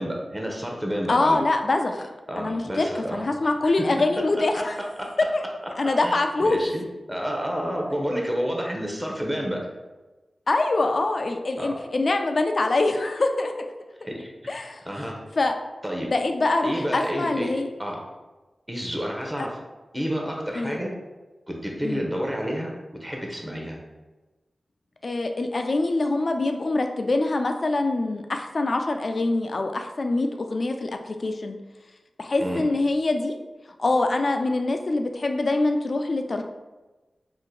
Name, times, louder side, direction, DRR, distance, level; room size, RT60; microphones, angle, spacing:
voice 1, 0.0-1.5 2.3-3.2 3.6-3.7 4.4-5.1 6.0-9.7 11.6-11.7 14.1-15.2 15.8-16.1 16.6-17.5 17.8-18.0 18.7-19.5 19.9-20.9 21.5-22.7 23.0-23.8 32.4-32.6, equal, 15° right, 0 dB, 0.8 m, -30 dB
voice 2, 1.1-2.1 2.4-4.8 5.3-5.4 5.8-6.6 10.5-13.5 14.0-14.1 14.5-14.8 15.4-15.5 16.1-17.7 19.4-19.5 20.5-20.8 21.8-22.1 25.0-31.6 32.2-33.4 33.8-36.4, left 2 dB, 60° left, 5 dB, 0.3 m, -24 dB
2.8 x 2.5 x 3.8 m, 1.2 s
cardioid pair, 45°, 0 cm